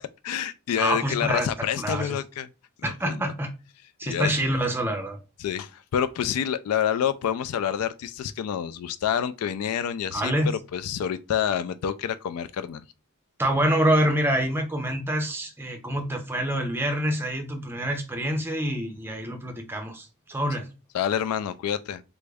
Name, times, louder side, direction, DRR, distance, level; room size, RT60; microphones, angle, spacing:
voice 1, 0.0-2.5 2.8-3.2 4.1-4.3 5.4-12.8 20.9-22.0, left 9 dB, 75° left, 0.3 m, -28 dB
voice 2, 0.8-1.5 1.7-2.2 2.8-3.5 4.0-5.2 10.1-10.5 13.4-20.7, right 1 dB, 10° right, 0.6 m, -26 dB
3.5 x 2.0 x 3.4 m
head